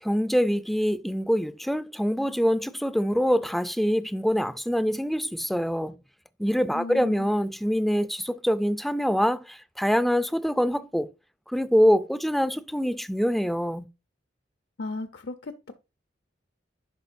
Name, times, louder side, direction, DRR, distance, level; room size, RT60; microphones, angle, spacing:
voice 1, 0.0-6.0 6.4-11.1 11.5-13.9, equal, ahead, 0.3 m, -25 dB
voice 2, 6.7-7.3 14.8-15.7, left 2 dB, 70° left, 0.6 m, -36 dB
10.5 x 5.1 x 2.6 m
head